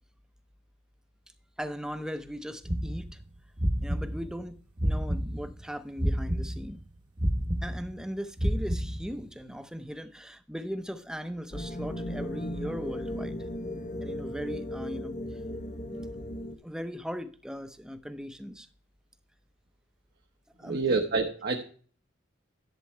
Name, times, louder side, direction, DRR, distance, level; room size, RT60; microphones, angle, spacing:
voice 1, 1.6-3.2 3.8-4.5 4.8-6.8 7.6-13.4 14.0-15.4 15.8-16.1 16.6-18.7 20.6-21.0, equal, 5° right, 0.6 m, -38 dB
sound 1, 2.7-5.6 6.0-9.3, equal, 25° right, 1.0 m, -30 dB
sound 2, 11.5-16.6, left 1 dB, 40° left, 0.8 m, -36 dB
voice 2, 20.6-21.6, right 4 dB, 55° right, 0.9 m, -27 dB
11.5 x 7.6 x 3.3 m
head